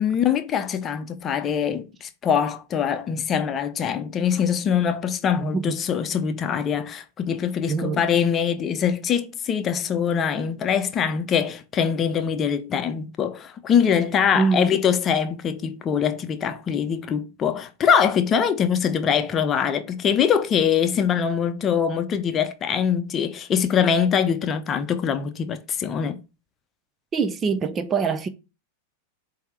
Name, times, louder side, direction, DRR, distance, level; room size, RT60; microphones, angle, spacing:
voice 1, 0.0-26.2, left 7 dB, 25° left, 0.7 m, -23 dB
voice 2, 5.4-5.8 7.7-8.0 14.3-14.8 27.1-28.3, right 5 dB, 25° right, 0.5 m, -24 dB
7.9 x 2.9 x 4.6 m
figure-of-eight pair, 90°, 0 cm